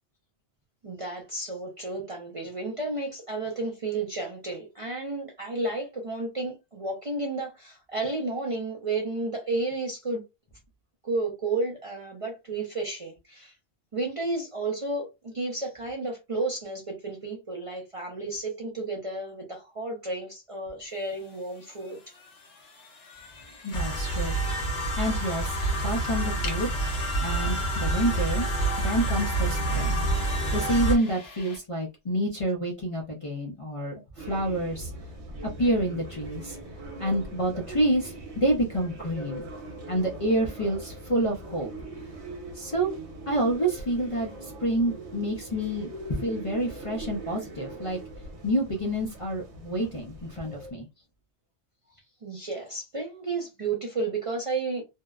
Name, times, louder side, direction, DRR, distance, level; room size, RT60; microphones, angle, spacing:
voice 1, 0.8-10.2 11.0-13.5 13.9-22.0 52.2-54.8, right 2 dB, 40° right, 0.5 m, -32 dB
sound 1, 20.8-31.6, left 4 dB, 65° left, 1.0 m, -46 dB
voice 2, 23.6-25.6 25.8-26.7 27.2-28.5 28.8-34.9 35.6-36.6 37.0-39.4 39.9-41.7 42.5-42.9 43.3-48.0 48.4-50.9, right 1 dB, 45° left, 0.5 m, -28 dB
sound 2, 23.7-31.0, right 2 dB, 85° left, 1.2 m, -27 dB
sound 3, 34.2-50.7, right 2 dB, 75° right, 1.1 m, -41 dB
2.6 x 2.1 x 2.3 m
omnidirectional pair, 1.2 m